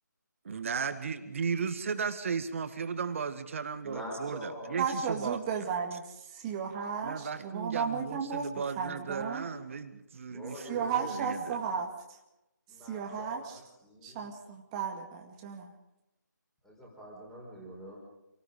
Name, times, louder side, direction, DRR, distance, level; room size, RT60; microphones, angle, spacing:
voice 1, 0.5-5.4 7.0-11.6, right 6 dB, 40° right, 9 dB, 1.9 m, -35 dB
voice 2, 3.8-4.8 10.3-11.2 11.5-11.6 12.7-14.3 16.6-18.0, equal, 5° left, -4 dB, 4.6 m, -44 dB
voice 3, 4.8-8.5 8.8-9.5 10.7-12.2 12.8-13.6 14.0-15.7, right 6 dB, 20° right, 2 dB, 2.0 m, -34 dB
27.0 x 18.5 x 5.2 m, 0.92 s
figure-of-eight pair, 160°, 10 cm